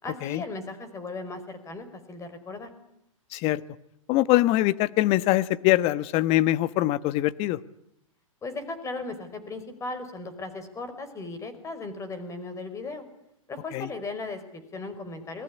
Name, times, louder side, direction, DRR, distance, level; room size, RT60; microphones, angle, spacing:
voice 1, 0.0-2.7 8.4-13.0 13.5-15.4, left 3 dB, 15° left, 11 dB, 5.1 m, -37 dB
voice 2, 3.3-3.6 4.1-7.6 13.7-13.9, left 16 dB, 35° left, 16 dB, 1.2 m, -23 dB
28.0 x 20.5 x 9.8 m, 0.77 s
hypercardioid pair, 115°, 17 cm